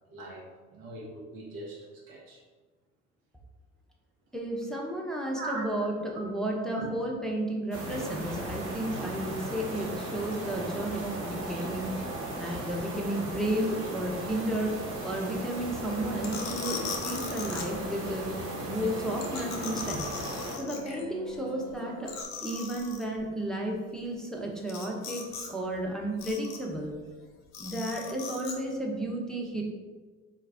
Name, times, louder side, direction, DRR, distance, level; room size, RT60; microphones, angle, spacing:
voice 1, 0.1-2.4 5.4-5.7 6.1-6.2 6.7-6.9, right 2 dB, 75° right, -2 dB, 1.1 m, -40 dB
voice 2, 4.3-11.9 12.4-14.7 15.0-18.2 18.6-20.1 20.6-22.1 22.4-26.9 27.6-29.6, right 1 dB, ahead, -1 dB, 0.7 m, -33 dB
sound 1, 7.7-20.6, right 2 dB, 45° right, 1.2 m, -37 dB
Musical instrument, 15.8-22.2, left 3 dB, 45° left, 0.7 m, -43 dB
sound 2, 16.2-17.6 19.2-21.0 21.4-21.5 21.7-21.8 22.1-23.0 24.7-25.5 25.7-26.8 27.5-28.5, left 5 dB, 85° left, 0.6 m, -39 dB
4.0 x 2.3 x 3.4 m, 1.3 s
hypercardioid pair, 60°, 35 cm